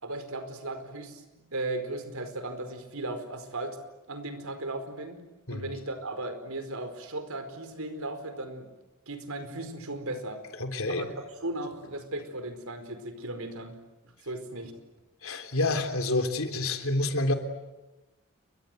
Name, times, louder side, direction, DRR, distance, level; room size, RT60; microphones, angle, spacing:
voice 1, 0.0-3.8 4.1-5.2 5.5-8.7 9.1-10.4 10.9-11.1 11.4-13.8 14.2-14.7, right 2 dB, 80° right, 8 dB, 4.7 m, -36 dB
voice 2, 10.6-11.1 15.2-17.3, left 2 dB, 75° left, 6 dB, 3.4 m, -28 dB
30.0 x 24.0 x 7.9 m, 1.1 s
head